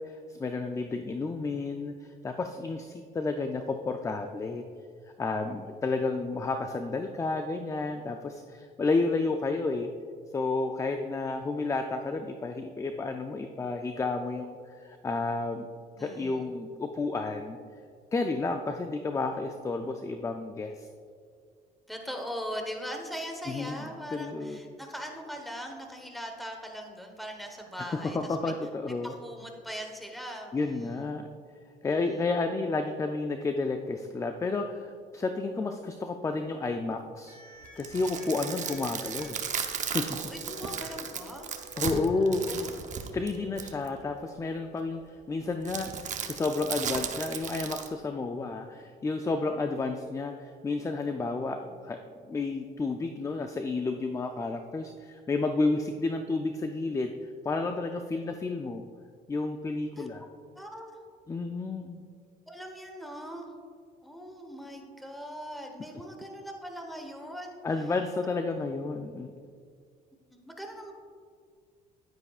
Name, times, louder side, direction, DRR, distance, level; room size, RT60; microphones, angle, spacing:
voice 1, 0.0-4.6 5.2-9.9 10.3-15.7 16.0-17.6 18.1-20.9 23.5-24.6 27.8-29.1 30.5-31.3 31.8-37.4 37.7-39.4 39.9-40.2 41.8-42.7 43.1-52.0 52.3-57.1 57.4-58.8 59.3-60.2 61.3-62.0 67.6-69.3, left 3 dB, 20° left, 6 dB, 0.4 m, -31 dB
voice 2, 15.9-16.5 21.9-28.5 28.8-31.1 31.8-32.2 40.3-41.5 42.4-42.7 60.0-60.1 60.5-61.0 62.5-63.5 64.0-67.6 70.3-70.9, equal, ahead, 3 dB, 1.1 m, -40 dB
sound 1, 37.3-43.3, equal, 50° left, 1.3 m, -50 dB
sound 2, 37.6-43.9 45.7-47.9, right 7 dB, 45° right, 0.8 m, -35 dB
10.5 x 9.7 x 2.4 m, 2.1 s
cardioid pair, 110°, 17 cm